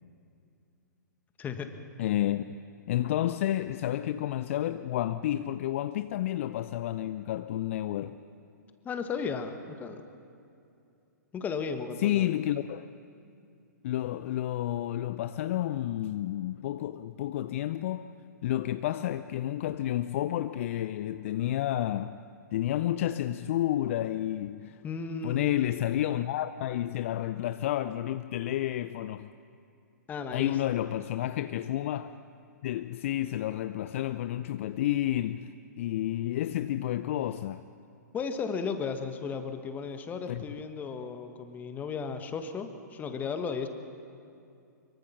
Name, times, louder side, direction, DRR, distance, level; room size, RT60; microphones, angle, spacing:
voice 1, 1.4-1.7 8.8-10.0 11.3-12.3 24.8-25.5 30.1-30.6 38.1-43.7, left 5 dB, 15° left, 1.5 m, -35 dB
voice 2, 2.0-2.4 2.9-8.2 12.0-12.9 13.8-18.1 18.4-22.2 22.5-24.8 25.2-29.3 30.3-32.2 32.6-37.6 40.3-40.4, left 13 dB, 45° left, 0.5 m, -30 dB
24.5 x 23.0 x 5.7 m
figure-of-eight pair, 115°, 10 cm